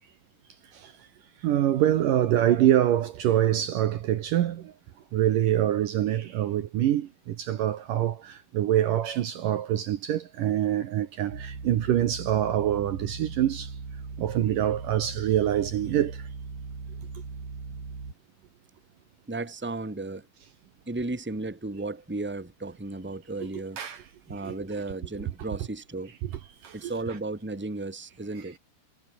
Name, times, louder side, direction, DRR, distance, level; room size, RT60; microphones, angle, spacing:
voice 1, 1.4-4.7 5.1-13.7 14.2-16.2 23.8-24.0 24.4-24.6 26.6-26.9, right 11 dB, 65° right, 2.6 m, -25 dB
sound 1, 11.3-18.1, right 4 dB, 50° right, 7.0 m, -39 dB
voice 2, 19.3-20.3 20.9-23.8 24.3-26.1 26.7-28.6, right 2 dB, 5° right, 2.4 m, -34 dB
omnidirectional pair, 4.6 m